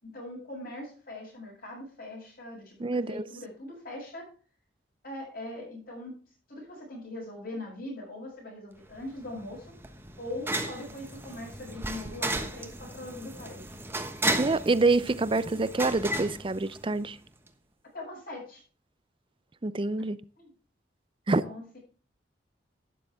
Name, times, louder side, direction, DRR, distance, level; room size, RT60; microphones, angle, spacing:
voice 1, 0.0-4.3 5.0-6.2 6.5-13.8 14.3-14.4 15.4-15.6 17.9-18.6 20.4-20.5 21.4-21.8, left 1 dB, 55° left, 7.0 m, -41 dB
voice 2, 2.8-3.2 14.4-17.2 19.6-20.2 21.3-21.4, right 3 dB, 30° right, 0.5 m, -26 dB
sound 1, 8.9-17.2, right 1 dB, 15° right, 1.2 m, -35 dB
12.0 x 10.0 x 3.6 m
head